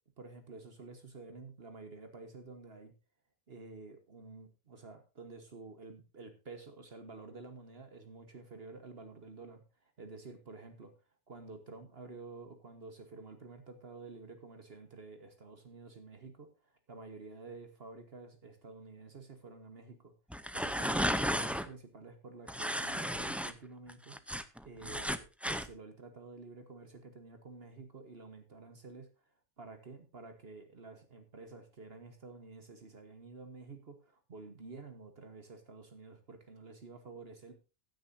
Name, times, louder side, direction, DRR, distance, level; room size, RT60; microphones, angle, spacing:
voice 1, 0.2-2.9 3.5-9.6 10.0-10.9 11.3-20.1 20.5-24.2 24.6-29.1 29.6-37.5, right 3 dB, 55° right, 7 dB, 1.7 m, -50 dB
sound 1, 20.3-21.7 22.5-23.5 23.9-25.7, equal, ahead, 0.5 m, -34 dB
16.0 x 9.2 x 2.7 m, 0.30 s
omnidirectional pair, 1.2 m